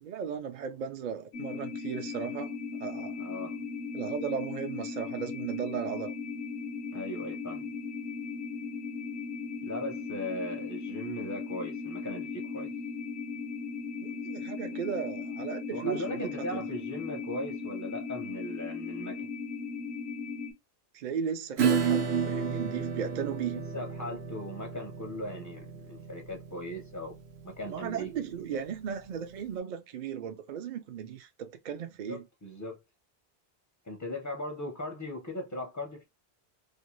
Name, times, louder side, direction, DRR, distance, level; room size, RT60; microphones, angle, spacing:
voice 1, 0.0-2.5 2.8-3.2 3.9-6.1 14.0-16.6 20.9-23.6 27.7-32.2, right 7 dB, 55° right, 0.5 m, -36 dB
sound 1, 1.3-20.5, left 5 dB, 75° left, 0.9 m, -37 dB
voice 2, 3.2-3.6 6.9-7.7 9.6-12.7 15.7-19.3 23.5-27.2 27.4-28.1 28.5-28.6 32.1-32.8 33.9-36.0, left 1 dB, 25° left, 0.5 m, -38 dB
Acoustic guitar / Strum, 21.6-28.8, right 6 dB, 80° right, 1.0 m, -32 dB
2.6 x 2.2 x 2.9 m
omnidirectional pair, 1.1 m